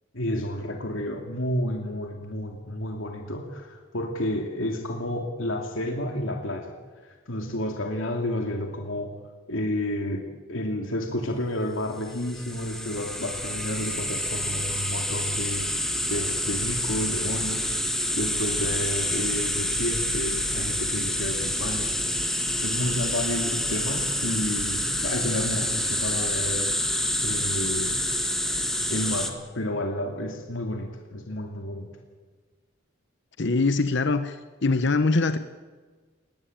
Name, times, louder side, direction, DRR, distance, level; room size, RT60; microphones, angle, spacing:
voice 1, 0.1-6.7 7.0-9.1 9.5-15.7 16.1-17.7 18.1-21.9 22.6-26.8 27.2-28.1 28.9-31.9, left 1 dB, 85° left, 2 dB, 2.7 m, -31 dB
sound 1, 12.0-29.3, left 1 dB, ahead, 1.9 m, -28 dB
voice 2, 33.4-35.4, left 3 dB, 60° left, 10 dB, 1.0 m, -23 dB
21.0 x 17.5 x 8.9 m, 1.4 s
head